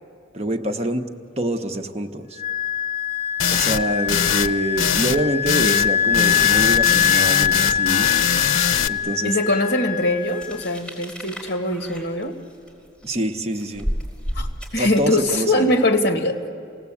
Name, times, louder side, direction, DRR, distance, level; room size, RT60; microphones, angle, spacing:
voice 1, 0.3-1.0 1.4-2.4 3.5-8.1 8.9-9.4 13.0-13.9 14.8-15.7, right 1 dB, 35° right, 5 dB, 1.0 m, -25 dB
Wind instrument woodwind instrument, 2.4-10.7, left 8 dB, 40° left, 0.9 m, -23 dB
sound 1, 3.4-3.8 4.1-4.5 4.8-5.2 5.4-5.9 6.1-8.9, left 7 dB, 85° left, 0.6 m, -22 dB
voice 2, 9.2-12.3 14.4-14.5 14.7-16.4, left 1 dB, 55° left, 6 dB, 1.9 m, -22 dB
sound 2, 10.2-15.3, equal, 5° left, 4.4 m, -32 dB
29.0 x 18.5 x 8.5 m, 2.4 s
head